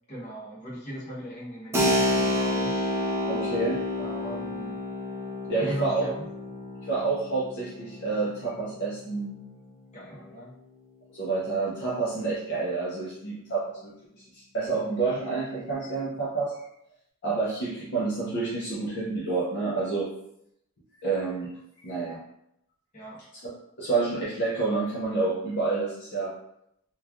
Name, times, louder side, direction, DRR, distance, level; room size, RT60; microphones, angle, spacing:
voice 1, 0.1-2.7 4.0-4.8 5.6-6.3 9.9-10.5 22.9-23.2, equal, 35° left, -7 dB, 0.9 m, -38 dB
Keyboard (musical), 1.7-10.1, left 1 dB, 10° right, 0.3 m, -30 dB
voice 2, 3.3-3.8 5.5-6.1 6.9-9.4 11.1-14.0 14.5-16.6 17.2-20.1 21.0-21.5 21.8-22.2 23.4-26.3, right 3 dB, 50° left, -7 dB, 0.6 m, -28 dB
3.0 x 2.3 x 2.4 m, 0.75 s
head